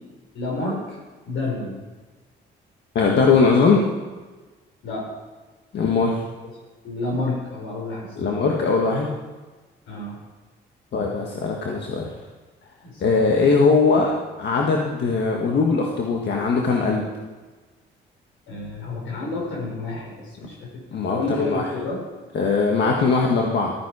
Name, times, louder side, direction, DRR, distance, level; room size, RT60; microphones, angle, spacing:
voice 1, 0.3-1.0 1.3-1.8 4.8-5.1 6.8-8.5 9.9-10.2 12.8-13.0 18.5-22.0, left 2 dB, 80° left, -1 dB, 4.9 m, -30 dB
voice 2, 2.9-3.8 5.7-6.1 8.2-9.1 10.9-12.1 13.0-17.0 20.9-21.7 22.3-23.7, left 4 dB, 60° left, 0 dB, 1.6 m, -20 dB
14.0 x 9.4 x 4.8 m, 1.3 s
cardioid pair, 90°, 20 cm